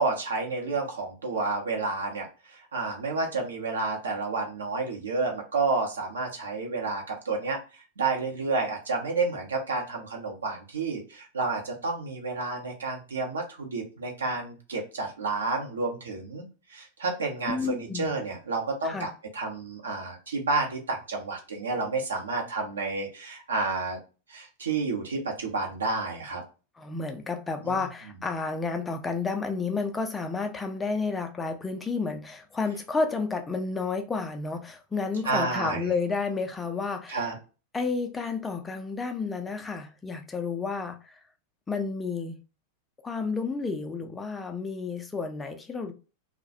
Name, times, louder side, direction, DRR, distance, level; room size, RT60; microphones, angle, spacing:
voice 1, 0.0-7.6 8.0-24.0 24.3-26.4 27.6-27.8 35.2-35.9 37.1-37.3, right 3 dB, 70° right, 0.7 m, -30 dB
voice 2, 17.5-18.2 18.8-19.1 26.8-37.3 37.7-41.2 41.7-42.4 43.0-45.9, left 4 dB, 15° left, 0.4 m, -31 dB
2.2 x 2.1 x 2.6 m
figure-of-eight pair, 90°, 0 cm